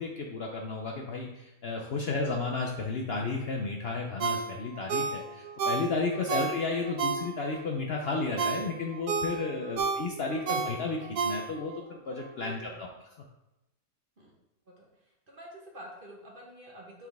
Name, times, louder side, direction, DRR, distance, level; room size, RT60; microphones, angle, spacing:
voice 1, 0.0-12.9, left 3 dB, 60° left, 1 dB, 0.7 m, -33 dB
Ringtone, 4.2-7.6 8.1-11.8 12.2-12.3, right 5 dB, 90° right, 1.2 m, -32 dB
voice 2, 9.5-9.9 12.3-12.8 14.2-14.3 14.8-14.9 15.3-17.1, equal, 40° right, -2 dB, 1.3 m, -48 dB
7.5 x 3.9 x 3.5 m, 0.91 s
omnidirectional pair, 1.5 m